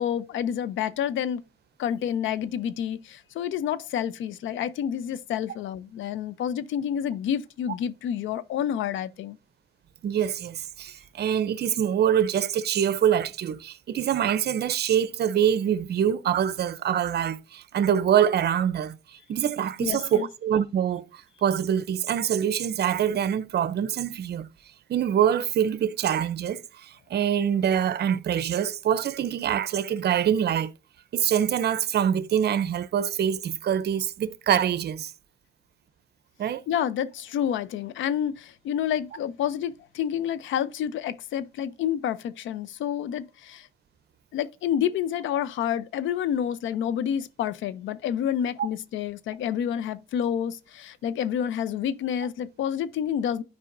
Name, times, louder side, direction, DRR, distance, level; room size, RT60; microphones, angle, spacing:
voice 1, 0.0-1.4 1.8-9.4 19.8-20.3 36.7-43.7 44.3-53.4, left 9 dB, 75° left, 0.6 m, -29 dB
voice 2, 10.0-24.5 24.9-30.7 31.1-35.1 36.4-36.7, right 9 dB, 55° right, 0.6 m, -25 dB
12.0 x 4.8 x 2.6 m
cardioid pair, 90°, 20 cm